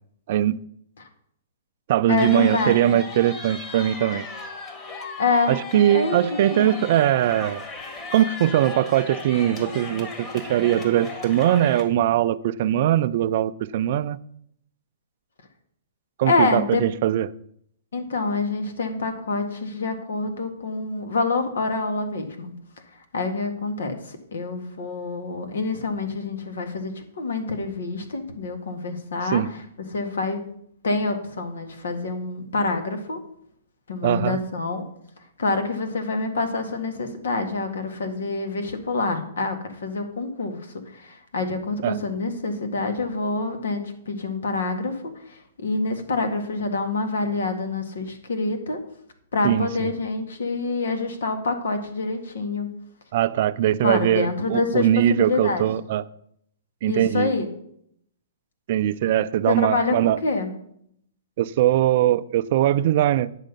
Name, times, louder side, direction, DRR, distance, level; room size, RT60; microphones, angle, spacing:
voice 1, 0.3-0.6 1.9-4.3 5.5-7.6 8.1-14.2 16.2-17.3 29.3-29.5 34.0-34.4 41.8-42.0 49.4-49.7 53.1-56.0 56.8-57.3 58.7-60.2 61.4-63.3, right 12 dB, 50° right, 0.4 m, -21 dB
voice 2, 2.1-3.0 5.2-6.2 6.5-6.8 16.3-16.8 17.9-22.5 23.1-29.6 29.9-30.4 30.8-33.2 33.9-34.9 35.4-48.8 49.3-52.7 53.8-55.7 56.9-57.5 59.5-60.5, left 3 dB, 85° left, 1.9 m, -26 dB
sound 1, 2.2-11.8, left 3 dB, 25° left, 1.8 m, -36 dB
10.0 x 6.6 x 5.3 m
hypercardioid pair, 145°, 0 cm